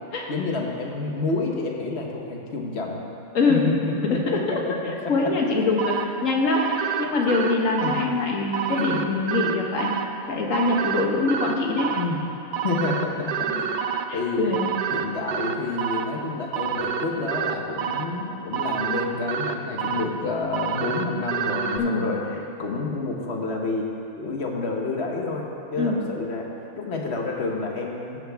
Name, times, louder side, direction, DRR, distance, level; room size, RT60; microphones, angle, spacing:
voice 1, 0.3-3.0 3.5-5.1 7.8-8.0 8.7-9.0 11.9-12.2 12.6-13.7 14.1-14.5 14.9-23.9 24.2-26.5 26.8-28.2, left 3 dB, 55° left, 0 dB, 1.2 m, -29 dB
voice 2, 3.3-3.7 4.0-9.9 10.3-11.9 13.5-13.6 14.1-14.7 21.8-22.1 25.8-26.0, left 3 dB, 70° left, 0 dB, 1.5 m, -24 dB
sound 1, 5.8-21.8, right 7 dB, 80° right, 0.4 m, -29 dB
15.5 x 7.5 x 3.4 m, 2.7 s
omnidirectional pair, 1.4 m